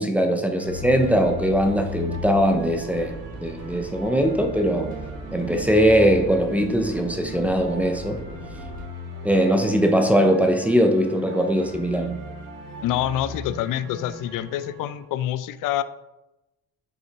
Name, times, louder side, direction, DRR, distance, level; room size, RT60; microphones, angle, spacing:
voice 1, 0.0-4.9 5.3-8.2 9.2-12.2, equal, 5° right, 0.5 m, -21 dB
sound 1, 0.6-15.1, left 1 dB, 70° right, 1.4 m, -38 dB
sound 2, 0.7-8.8, right 1 dB, 25° right, 1.9 m, -40 dB
voice 2, 12.8-15.8, left 12 dB, 75° left, 0.5 m, -26 dB
7.6 x 5.6 x 2.9 m
cardioid pair, 145°, 32 cm